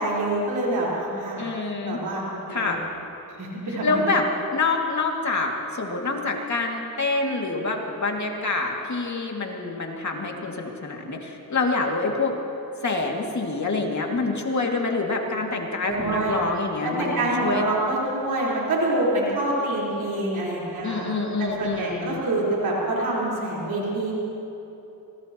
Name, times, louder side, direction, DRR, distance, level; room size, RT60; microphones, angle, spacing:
voice 1, 0.0-1.5 1.8-2.7 3.4-3.9 15.9-16.4 16.8-24.1, right 1 dB, 85° right, -6 dB, 4.5 m, -26 dB
voice 2, 1.4-2.0 2.5-2.8 3.7-12.3 12.8-17.7 20.8-22.2, left 3 dB, 50° left, 0 dB, 2.5 m, -26 dB
24.0 x 19.0 x 3.1 m, 3.0 s
cardioid pair, 60°, 36 cm